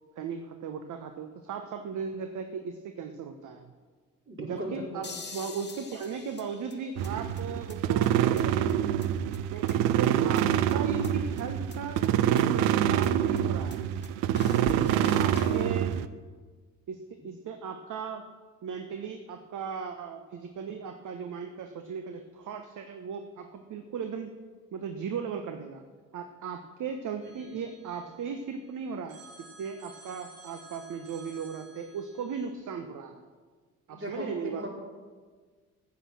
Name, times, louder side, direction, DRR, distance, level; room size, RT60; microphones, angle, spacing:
voice 1, 0.2-3.7 4.4-9.1 9.5-12.0 12.4-13.8 14.4-15.9 16.9-18.2 18.6-24.4 24.7-25.8 26.1-33.2 33.9-34.7, right 6 dB, 50° right, 7 dB, 1.1 m, -37 dB
voice 2, 4.3-5.1 27.4-27.5 33.9-34.7, equal, 30° right, -2 dB, 4.7 m, -38 dB
sound 1, 5.0-7.1 7.4-7.5 7.7-7.8 8.0-8.1 8.4-8.5 8.7-8.8 9.0-9.1 9.3-10.1 10.4-10.5 10.7-10.8 11.0-11.1 11.4-11.5 11.7-11.8 12.0-12.1 12.4-12.5 12.7-12.8 13.0-13.1 13.4-13.5 13.7-13.8 14.0-14.1 14.4-15.7, left 4 dB, 25° left, 1.6 m, -43 dB
sound 2, 7.0-16.1, right 10 dB, 65° right, 0.7 m, -26 dB
Telephone, 27.2-28.6 29.1-32.5, right 2 dB, 85° right, 2.1 m, -53 dB
14.5 x 8.4 x 6.2 m, 1.5 s
figure-of-eight pair, 45°, 39 cm